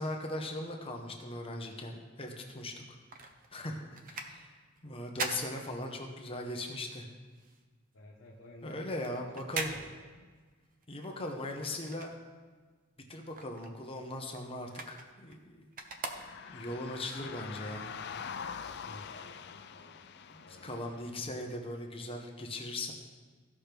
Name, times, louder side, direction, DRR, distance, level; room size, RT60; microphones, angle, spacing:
voice 1, 0.0-2.8 3.5-3.8 4.1-4.6 4.8-7.0 8.6-9.7 10.9-12.1 13.1-15.7 16.5-17.9 20.3-22.9, left 1 dB, 30° left, 2 dB, 1.0 m, -39 dB
sound 1, 2.7-6.4 6.7-12.7 13.0-16.8 17.3-17.4, right 3 dB, 45° right, 0.8 m, -43 dB
voice 2, 7.9-8.8 9.1-9.2 9.7-10.0 18.8-20.0 20.3-20.9, left 1 dB, 80° left, -5 dB, 1.2 m, -53 dB
sound 2, 16.0-21.2, left 7 dB, 55° left, 0.5 m, -44 dB
15.5 x 5.9 x 3.5 m, 1.5 s
head